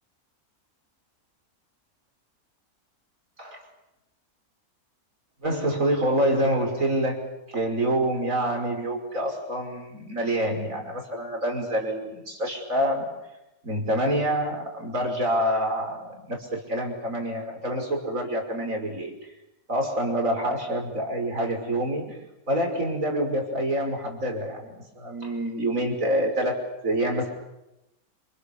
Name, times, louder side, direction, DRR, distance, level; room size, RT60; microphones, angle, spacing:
voice 1, 5.4-13.2 13.6-19.1 19.7-22.2 22.5-27.3, right 1 dB, 60° right, 2 dB, 5.8 m, -27 dB
29.0 x 28.5 x 6.9 m, 0.94 s
omnidirectional pair, 1.6 m